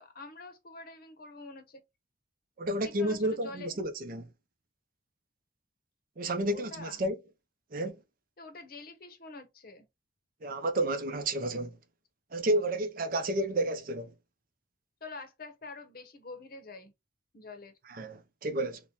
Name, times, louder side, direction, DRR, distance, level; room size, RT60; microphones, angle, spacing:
voice 1, 0.0-1.8 2.8-3.8 6.5-7.0 8.4-9.9 15.0-16.9 17.3-17.7, left 3 dB, 50° left, 0.7 m, -46 dB
voice 2, 2.6-4.3 6.2-7.2 7.7-8.0 10.4-11.7 12.3-14.1 17.9-18.8, right 1 dB, 50° right, 0.5 m, -31 dB
2.9 x 2.2 x 3.6 m
head